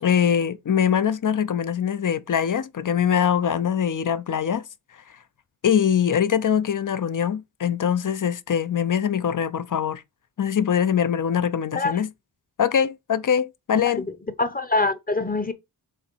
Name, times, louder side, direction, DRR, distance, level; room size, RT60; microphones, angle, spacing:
voice 1, 0.0-4.7 5.6-10.0 10.4-12.1 12.6-14.0, left 8 dB, 45° left, 0.6 m, -23 dB
voice 2, 13.8-14.1 14.4-15.5, left 3 dB, 20° left, 0.8 m, -24 dB
6.9 x 2.9 x 4.6 m
wide cardioid pair, 110°, 46 cm